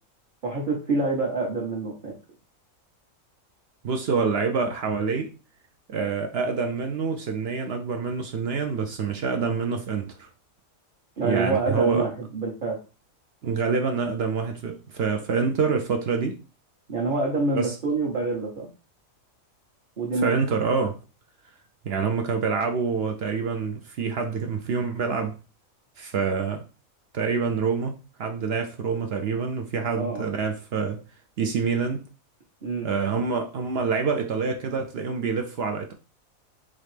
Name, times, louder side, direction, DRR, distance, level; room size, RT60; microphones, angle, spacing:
voice 1, 0.4-2.1 11.2-12.8 16.9-18.7 20.0-20.3 30.0-30.3 32.6-32.9, right 3 dB, 40° right, 1.1 m, -26 dB
voice 2, 3.8-5.3 5.9-10.3 11.2-12.1 13.4-16.4 17.5-17.7 20.2-21.0 21.8-25.4 26.0-26.6 27.1-31.0 31.4-32.0 32.8-35.9, right 5 dB, 65° right, 0.6 m, -26 dB
3.8 x 3.1 x 3.2 m
omnidirectional pair, 1.4 m